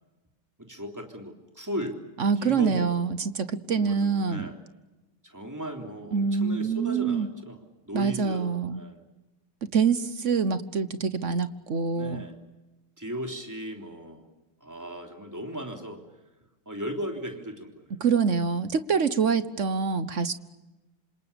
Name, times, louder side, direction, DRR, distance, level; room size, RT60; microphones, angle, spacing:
voice 1, 0.6-2.0 2.4-2.9 3.7-4.6 5.2-7.6 7.9-8.5 8.8-9.0 11.9-12.4 13.0-14.2 14.6-16.0 16.6-18.3, equal, 10° right, 3 dB, 3.4 m, -37 dB
voice 2, 2.2-4.5 6.1-7.3 7.9-8.8 9.7-12.2 18.0-20.3, right 5 dB, 45° right, 13 dB, 1.1 m, -25 dB
28.0 x 26.5 x 7.0 m, 1.1 s
omnidirectional pair, 2.3 m